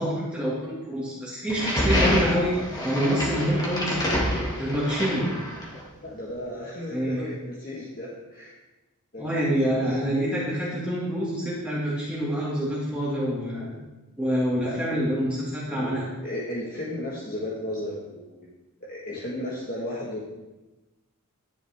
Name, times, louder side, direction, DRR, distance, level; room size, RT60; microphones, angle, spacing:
voice 1, 0.0-2.5 2.8-4.2 4.6-5.3 6.9-7.3 9.2-13.8 14.2-16.1, equal, 5° right, -7 dB, 2.0 m, -27 dB
sound 1, 1.5-5.8, equal, 15° left, 2.1 m, -27 dB
voice 2, 6.0-8.5 9.1-9.3 9.6-10.0 14.6-14.8 15.7-16.0 16.2-18.5 18.8-20.2, left 1 dB, 40° left, -5 dB, 1.6 m, -34 dB
11.0 x 10.5 x 3.6 m, 1.1 s
head